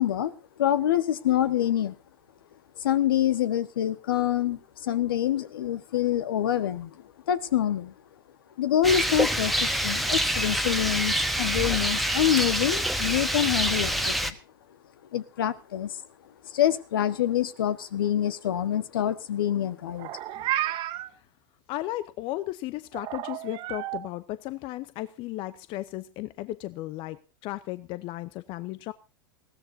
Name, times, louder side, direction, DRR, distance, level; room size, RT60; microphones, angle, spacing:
voice 1, 0.0-1.9 2.8-7.9 8.6-14.4 15.1-16.0 16.4-20.1, left 11 dB, 70° left, 1.4 m, -26 dB
Rain, 8.8-14.3, equal, ahead, 1.3 m, -26 dB
Meow, 19.9-21.1 22.9-24.0, right 14 dB, 45° right, 1.7 m, -31 dB
voice 2, 21.7-28.9, left 16 dB, 45° left, 0.8 m, -35 dB
21.0 x 16.5 x 2.7 m
hypercardioid pair, 95°, 12 cm